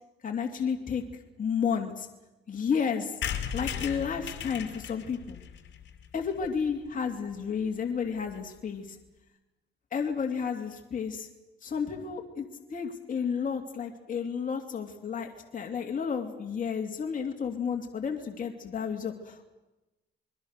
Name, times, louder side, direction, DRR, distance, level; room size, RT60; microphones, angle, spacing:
voice 1, 0.2-1.0 1.4-2.1 2.5-3.1 3.5-5.4 6.1-9.0 9.9-11.3 11.6-19.5, left 6 dB, 40° left, 3 dB, 2.7 m, -32 dB
sound 1, 3.2-6.9 7.3-7.4 7.6-7.7 7.9-8.0 8.2-8.5, left 8 dB, 65° left, 2.7 m, -37 dB
27.0 x 21.5 x 6.7 m, 1.0 s
cardioid pair, 90°, 20 cm